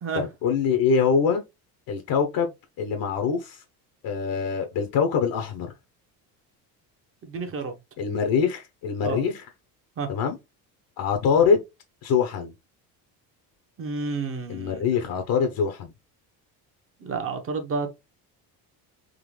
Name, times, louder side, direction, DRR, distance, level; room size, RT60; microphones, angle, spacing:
voice 1, 0.1-1.4 1.9-2.5 2.8-3.6 4.0-5.7 8.0-9.5 10.1-10.4 11.0-11.6 12.0-12.5 14.5-15.9, left 6 dB, 60° left, 0.9 m, -24 dB
voice 2, 7.2-7.7 9.0-9.2 10.0-10.1 13.8-14.9 17.0-17.9, right 4 dB, 35° right, 1.0 m, -30 dB
3.9 x 3.0 x 3.2 m
cardioid pair, 130°, 39 cm